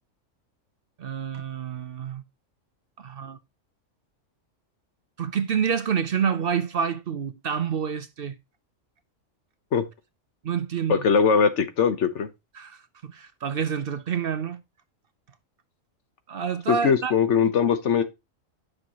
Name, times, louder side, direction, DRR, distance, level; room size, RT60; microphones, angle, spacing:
voice 1, 1.0-2.2 3.0-3.4 5.2-8.4 10.4-11.0 12.5-14.6 16.3-17.1, right 7 dB, 55° right, 0.7 m, -28 dB
voice 2, 10.9-12.3 16.7-18.0, left 6 dB, 65° left, 1.3 m, -21 dB
9.8 x 5.9 x 2.9 m
omnidirectional pair, 1.3 m